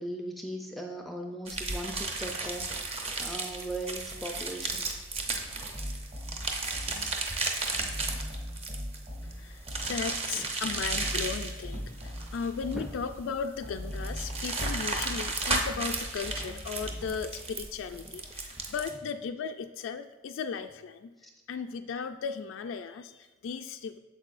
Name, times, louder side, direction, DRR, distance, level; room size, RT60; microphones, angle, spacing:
voice 1, 0.0-4.9 10.3-10.5 12.7-12.9 21.2-21.3, right 1 dB, ahead, 2 dB, 0.4 m, -38 dB
sound 1, 1.5-18.9, right 3 dB, 30° right, 0.7 m, -34 dB
sound 2, 5.7-7.3 7.7-10.2 10.7-13.2 13.6-17.4, equal, 45° right, 2.0 m, -40 dB
voice 2, 9.2-21.1 21.5-24.0, left 6 dB, 80° left, 7 dB, 0.3 m, -36 dB
8.3 x 7.1 x 2.5 m, 1.3 s
head